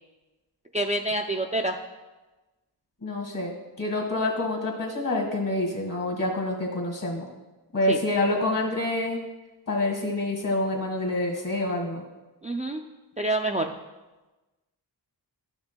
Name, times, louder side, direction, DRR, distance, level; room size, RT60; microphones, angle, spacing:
voice 1, 0.7-1.8 7.9-8.0 12.4-12.9 13.2-13.7, right 1 dB, 20° right, 1 dB, 0.3 m, -27 dB
voice 2, 3.0-7.3 7.7-9.2 9.7-12.0, left 2 dB, 50° left, 1 dB, 1.8 m, -27 dB
12.0 x 6.0 x 2.2 m, 1.2 s
wide cardioid pair, 100°, 43 cm